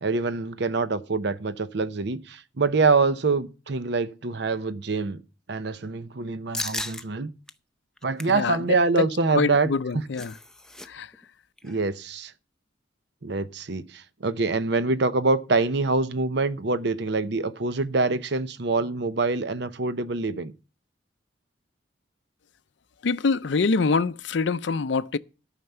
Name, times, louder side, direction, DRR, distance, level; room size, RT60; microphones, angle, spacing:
voice 1, 0.0-5.2 5.5-7.3 8.0-10.0 11.6-12.3 13.2-20.5, right 3 dB, 60° right, 0.7 m, -25 dB
sound 1, 6.5-7.0 7.5-7.6 8.0-8.4 9.7-10.9 11.1-11.3 11.6-11.9, left 2 dB, 5° left, 0.5 m, -35 dB
voice 2, 8.3-10.3 10.8-11.1 23.0-25.2, left 4 dB, 65° left, 0.5 m, -25 dB
13.0 x 5.8 x 6.7 m
head